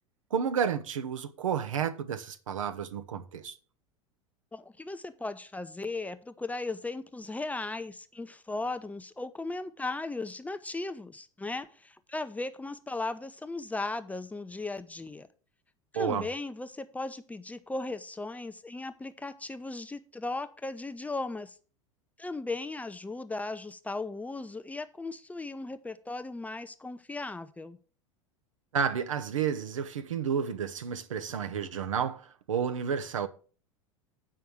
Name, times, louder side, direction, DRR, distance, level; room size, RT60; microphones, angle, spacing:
voice 1, 0.3-3.5 15.9-16.3 28.7-33.3, right 7 dB, 70° right, 0.9 m, -31 dB
voice 2, 4.5-15.3 15.9-21.6 22.2-27.8, left 2 dB, 10° left, 0.6 m, -37 dB
8.8 x 5.6 x 6.3 m
figure-of-eight pair, 80°, 17 cm